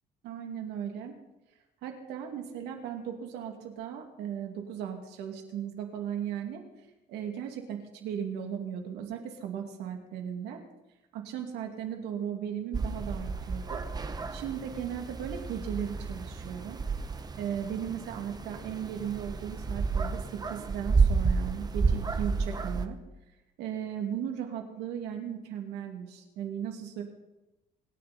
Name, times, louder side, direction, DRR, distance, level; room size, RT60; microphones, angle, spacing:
voice 1, 0.2-1.1 1.8-6.6 7.1-10.6 11.1-13.8 14.3-16.8 17.4-23.0 23.6-27.0, right 9 dB, 90° right, 3 dB, 2.5 m, -36 dB
sound 1, 12.7-22.9, right 4 dB, 25° right, 0.9 m, -31 dB
26.0 x 10.5 x 4.3 m, 1.0 s
cardioid pair, 110°, 17 cm